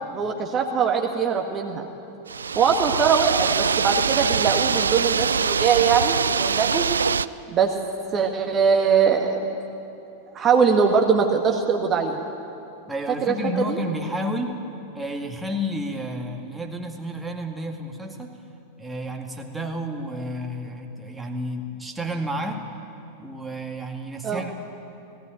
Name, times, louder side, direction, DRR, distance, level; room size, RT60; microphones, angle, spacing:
voice 1, 0.0-1.9 2.5-6.9 7.5-7.7 8.1-9.4 10.3-12.2 13.2-13.4 13.7-13.8 24.2-24.4, right 6 dB, 25° right, 2 dB, 1.6 m, -21 dB
sound 1, 2.3-7.3, right 6 dB, 70° right, 0.4 m, -23 dB
voice 2, 12.9-14.6 14.9-18.3 18.8-22.6 23.2-24.5, equal, 5° right, 2 dB, 2.0 m, -31 dB
17.5 x 16.5 x 9.2 m, 2.7 s
figure-of-eight pair, 90°, 0 cm